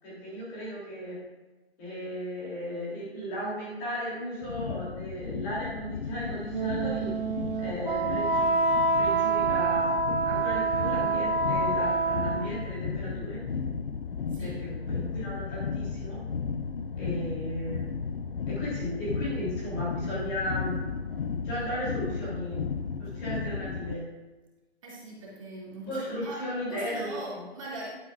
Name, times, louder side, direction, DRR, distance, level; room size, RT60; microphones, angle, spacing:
voice 1, 0.0-1.2 1.8-7.1 7.6-8.5 8.9-10.0 10.2-13.4 14.4-16.2 16.9-17.9 18.5-20.8 21.4-22.6 23.0-24.0 25.9-27.4, equal, 15° left, -7 dB, 3.0 m, -35 dB
sound 1, 4.4-23.9, left 5 dB, 65° left, 0.7 m, -34 dB
Wind instrument woodwind instrument, 6.5-12.7, right 3 dB, 55° right, 1.4 m, -27 dB
voice 2, 14.3-14.6 24.8-26.4 26.7-27.9, right 2 dB, 30° right, -5 dB, 2.6 m, -40 dB
12.0 x 11.0 x 2.5 m, 1.2 s
figure-of-eight pair, 160°, 32 cm